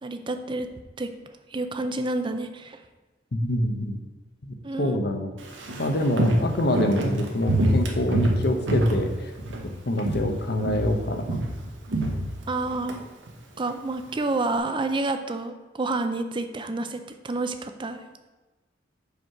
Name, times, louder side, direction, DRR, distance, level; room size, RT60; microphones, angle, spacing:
voice 1, 0.0-0.7 1.0-1.1 1.5-2.8 4.6-5.0 12.5-13.0 13.6-18.0, right 2 dB, 25° right, 8 dB, 0.5 m, -29 dB
voice 2, 3.3-4.0 4.5-5.3 5.8-9.3 9.9-11.4, left 1 dB, 60° left, 6 dB, 0.8 m, -26 dB
Walk footsteps, 5.4-9.7 10.0-10.4 10.6-13.0 13.3-13.4, right 1 dB, 85° right, 1.0 m, -25 dB
5.1 x 4.7 x 5.8 m, 1.2 s
head